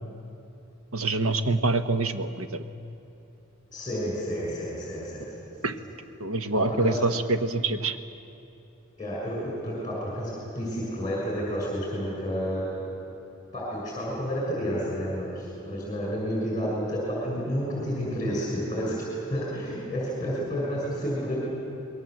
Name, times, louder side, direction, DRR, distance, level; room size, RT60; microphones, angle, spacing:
voice 1, 0.9-2.6 5.6-5.8 6.2-8.0, right 2 dB, 85° right, 9 dB, 1.3 m, -26 dB
voice 2, 3.7-5.3 6.7-7.0 9.0-12.8 13.5-21.4, equal, 20° left, -4 dB, 6.6 m, -30 dB
26.5 x 21.5 x 7.9 m, 2.8 s
head